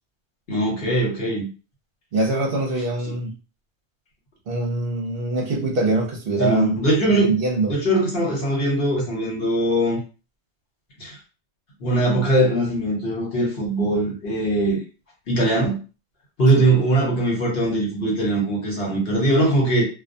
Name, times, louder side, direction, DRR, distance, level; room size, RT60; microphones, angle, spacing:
voice 1, 0.5-1.5 6.4-7.4 7.7-10.0 11.0-11.2 11.8-14.8 15.3-15.8 16.4-19.9, right 1 dB, 60° left, 1.2 m, -21 dB
voice 2, 2.1-3.3 4.5-7.7, right 2 dB, 60° right, 0.8 m, -23 dB
2.3 x 2.2 x 2.6 m
omnidirectional pair, 1.2 m